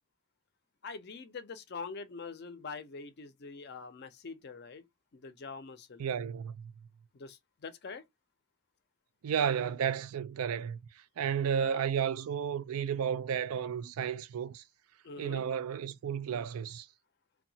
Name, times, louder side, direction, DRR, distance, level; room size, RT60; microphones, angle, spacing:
voice 1, 0.8-4.9 5.1-6.1 7.1-8.0 11.6-11.9 15.0-15.4, left 4 dB, 50° left, 0.5 m, -44 dB
voice 2, 6.0-6.7 9.2-14.6 15.2-16.9, right 8 dB, 90° right, 0.4 m, -33 dB
2.7 x 2.2 x 2.6 m
head